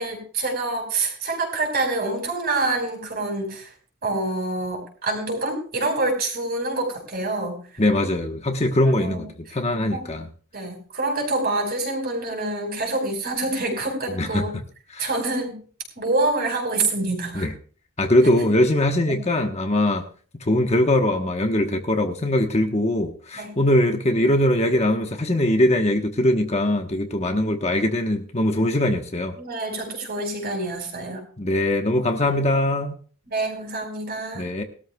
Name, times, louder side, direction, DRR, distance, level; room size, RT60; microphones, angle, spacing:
voice 1, 0.0-3.7 4.0-7.6 8.8-9.3 9.9-10.0 10.5-14.6 15.0-15.6 15.9-17.5 18.2-18.5 19.1-19.2 23.3-23.5 29.4-31.2 33.3-34.5, right 2 dB, 45° right, 2 dB, 4.9 m, -26 dB
voice 2, 7.8-10.3 14.1-14.4 14.9-15.1 17.3-17.5 18.0-20.0 20.5-29.3 31.4-32.9 34.3-34.6, left 1 dB, 30° left, 4 dB, 1.1 m, -21 dB
20.0 x 13.0 x 2.3 m, 0.40 s
head